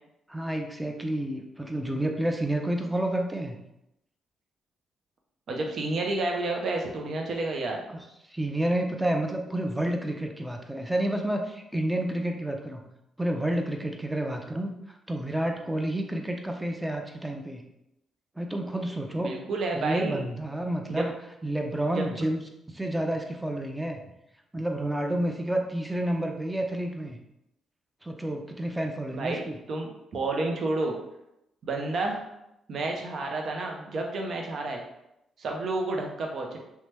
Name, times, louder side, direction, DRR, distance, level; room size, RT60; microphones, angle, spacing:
voice 1, 0.3-3.6 7.9-12.9 13.2-17.6 18.4-19.3 19.7-21.1 21.4-22.4 22.7-24.1 24.5-27.2 28.0-29.6, right 1 dB, 10° right, 3 dB, 0.5 m, -30 dB
voice 2, 5.5-7.8 19.2-20.2 20.9-21.1 21.9-22.0 29.1-29.4 29.7-30.9 31.6-32.2 32.7-34.8 35.4-36.6, right 2 dB, 60° right, 1 dB, 0.6 m, -30 dB
2.9 x 2.2 x 3.2 m, 0.85 s
supercardioid pair, 50°, 0 cm